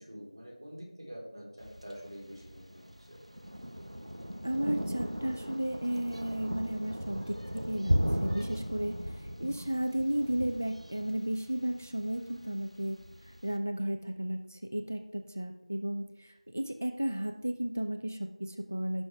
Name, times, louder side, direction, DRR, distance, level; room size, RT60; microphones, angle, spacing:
voice 1, 0.1-2.8 3.1-3.2, equal, 45° right, -4 dB, 4.0 m, -46 dB
Thunder, 1.6-13.5, equal, 65° right, 1.2 m, -37 dB
voice 2, 4.4-19.0, right 1 dB, 20° left, 7 dB, 0.3 m, -34 dB
16.0 x 6.2 x 3.4 m, 0.85 s
figure-of-eight pair, 180°, 4 cm